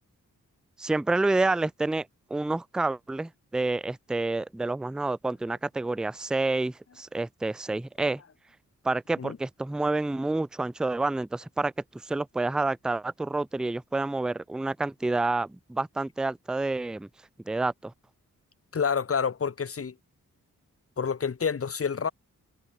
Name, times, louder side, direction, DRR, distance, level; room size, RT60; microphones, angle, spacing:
voice 1, 0.8-8.2 8.8-17.1 17.5-17.9, right 2 dB, ahead, 0.4 m, -29 dB
voice 2, 18.7-19.9 21.0-22.1, left 6 dB, 45° left, 1.1 m, -28 dB
cardioid pair, 45°, 33 cm